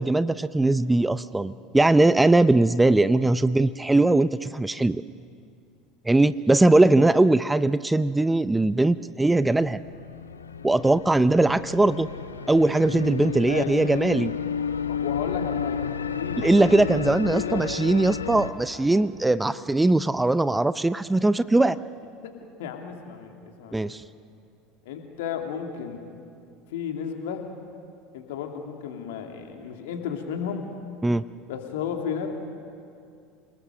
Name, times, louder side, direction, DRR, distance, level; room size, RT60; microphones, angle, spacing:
voice 1, 0.0-5.0 6.1-9.8 10.6-12.1 12.5-14.3 16.4-21.8 23.7-24.0 31.0-31.2, right 2 dB, 10° right, 16 dB, 0.5 m, -20 dB
sound 1, 9.4-18.5, left 6 dB, 85° left, 0.8 m, -32 dB
voice 2, 14.9-15.8 16.1-16.5 16.8-17.6 18.7-19.2 22.2-22.3 22.6-24.0 24.9-26.0 26.7-27.5 28.1-30.7 31.5-32.3, left 8 dB, 70° left, 3 dB, 2.6 m, -33 dB
28.5 x 19.5 x 6.5 m, 2.3 s
figure-of-eight pair, 70°, 0 cm